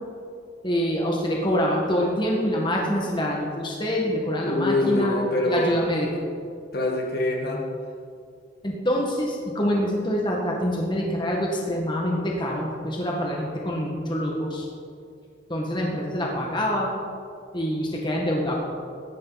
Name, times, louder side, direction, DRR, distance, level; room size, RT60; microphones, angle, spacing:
voice 1, 0.6-5.1 5.4-6.1 8.6-14.7 15.5-16.9 17.5-18.6, equal, 25° left, -2 dB, 1.8 m, -25 dB
voice 2, 4.4-5.8 6.7-7.6, left 2 dB, 55° left, 0 dB, 1.9 m, -24 dB
17.5 x 13.0 x 4.2 m, 2.3 s
head